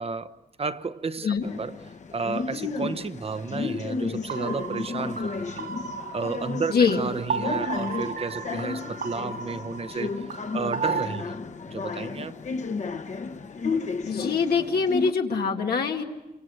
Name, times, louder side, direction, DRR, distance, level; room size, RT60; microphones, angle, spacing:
voice 1, 0.0-1.8 2.1-5.7 6.1-10.3 10.5-11.4 11.7-12.4, right 4 dB, 40° right, 0.9 m, -32 dB
sound 1, 1.4-15.1, left 4 dB, 50° left, 1.2 m, -33 dB
sound 2, 4.3-11.2, right 5 dB, 75° right, 4.0 m, -34 dB
voice 2, 6.7-7.0 14.0-16.0, left 5 dB, 85° left, 2.2 m, -24 dB
29.5 x 25.5 x 7.9 m
wide cardioid pair, 150°, 16 cm